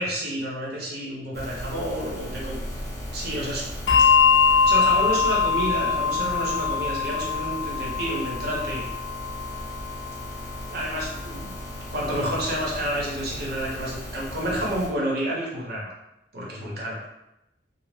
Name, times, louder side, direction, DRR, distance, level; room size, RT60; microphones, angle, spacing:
voice 1, 0.0-2.6 3.1-3.7 4.2-8.9 10.7-11.5 11.9-15.9 16.3-17.1, equal, 60° right, -3 dB, 0.8 m, -29 dB
sound 1, 1.3-14.9, equal, 20° left, 0.7 m, -36 dB
Bell, 3.9-10.7, left 5 dB, 80° left, 0.4 m, -23 dB
2.5 x 2.0 x 3.2 m, 0.88 s
head